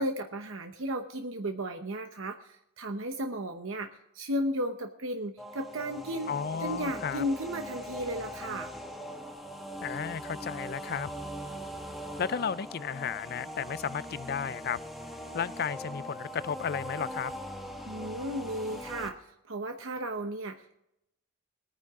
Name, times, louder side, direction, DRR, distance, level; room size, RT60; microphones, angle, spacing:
voice 1, 0.0-6.3 6.6-8.7 17.8-20.8, equal, 65° right, 0.9 m, -34 dB
sound 1, 5.4-19.1, equal, ahead, 1.2 m, -41 dB
voice 2, 6.3-7.2 9.8-11.1 12.2-14.8 15.3-17.3, left 7 dB, 45° left, 0.4 m, -33 dB
21.0 x 9.7 x 3.6 m
head